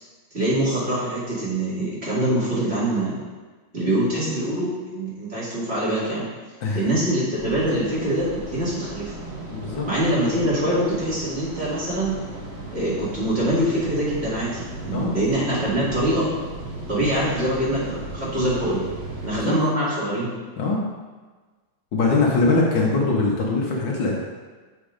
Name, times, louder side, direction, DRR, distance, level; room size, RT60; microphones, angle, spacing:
voice 1, 0.3-3.2 3.7-6.2 6.7-9.1 9.9-12.1 12.7-16.3 16.9-18.8 19.2-20.3, right 1 dB, 30° right, -8 dB, 2.4 m, -24 dB
sound 1, 7.3-19.3, right 2 dB, 65° right, 2.3 m, -36 dB
voice 2, 9.5-9.9 14.9-15.2 19.3-19.5 20.6-20.8 21.9-24.2, left 3 dB, 70° left, -2 dB, 1.7 m, -22 dB
7.1 x 4.5 x 5.0 m, 1.3 s
omnidirectional pair, 2.2 m